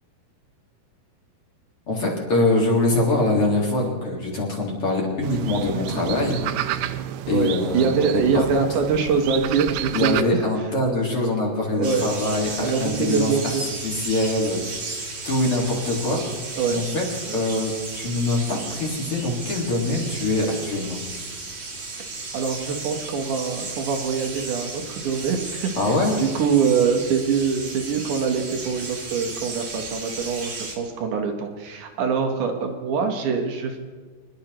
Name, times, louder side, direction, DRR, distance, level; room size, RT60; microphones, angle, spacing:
voice 1, 1.9-6.8 7.3-8.2 8.6-8.7 9.9-13.3 13.8-16.2 16.7-17.0 17.3-21.0 25.8-26.2, left 2 dB, 45° left, -2 dB, 2.1 m, -24 dB
sound 1, 5.2-10.2, right 12 dB, 85° right, 2.3 m, -30 dB
voice 2, 7.3-10.4 11.8-13.6 16.6-16.8 17.3-17.4 22.3-33.8, right 6 dB, 65° right, 4 dB, 2.1 m, -24 dB
sound 2, 11.8-30.8, right 3 dB, 45° right, 1.7 m, -34 dB
24.0 x 11.5 x 3.0 m, 1.4 s
omnidirectional pair, 4.8 m